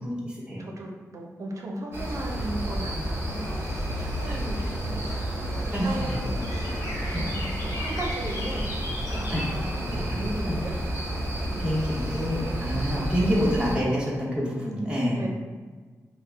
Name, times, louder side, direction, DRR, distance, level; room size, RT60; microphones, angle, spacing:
voice 1, 0.0-0.6 4.3-4.4 5.7-6.0 7.1-7.3 9.3-9.4 9.7-10.6 11.6-15.2, equal, 15° right, -6 dB, 1.1 m, -28 dB
voice 2, 0.6-5.1 5.6-6.9 7.2-8.7 9.1-10.7 11.4-13.5 15.1-15.3, right 1 dB, 65° right, 0 dB, 0.7 m, -37 dB
sound 1, 1.9-13.8, right 1 dB, 45° right, 1.1 m, -31 dB
sound 2, 3.3-12.3, left 1 dB, 80° left, 0.8 m, -38 dB
4.5 x 2.1 x 3.5 m, 1.4 s
cardioid pair, 75°, 6 cm